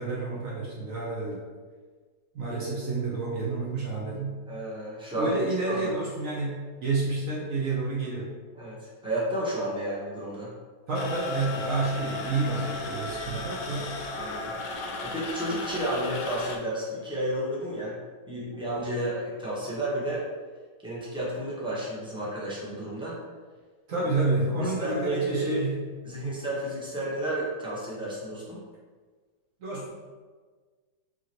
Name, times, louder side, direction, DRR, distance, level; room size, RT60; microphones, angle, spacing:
voice 1, 0.0-1.4 2.3-4.4 5.1-8.3 10.9-14.0 23.9-25.8 26.2-26.4 29.6-29.9, right 3 dB, 60° right, -4 dB, 1.0 m, -29 dB
voice 2, 4.4-5.3 5.6-6.0 8.6-10.5 13.3-13.8 14.1-14.5 15.0-18.0 18.3-20.2 20.8-23.2 23.9-24.0 24.6-25.6 26.0-28.6, right 1 dB, 5° right, -7 dB, 0.5 m, -32 dB
alien dial-up modem or an alien printer, 10.9-16.6, left 2 dB, 75° left, 1.2 m, -35 dB
4.8 x 3.0 x 2.9 m, 1.5 s
omnidirectional pair, 1.9 m